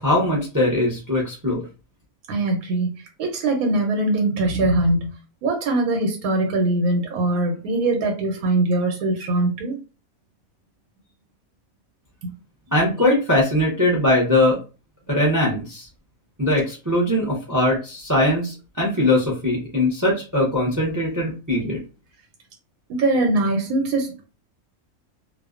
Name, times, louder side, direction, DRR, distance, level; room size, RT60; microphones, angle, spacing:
voice 1, 0.0-1.6 12.7-14.6 15.1-15.9 16.4-21.8, left 1 dB, 30° right, -3 dB, 0.3 m, -21 dB
voice 2, 2.3-2.9 3.2-5.1 5.4-9.8 22.9-24.3, right 2 dB, 90° right, 3 dB, 1.1 m, -22 dB
2.5 x 2.1 x 2.4 m, 0.32 s
omnidirectional pair, 1.5 m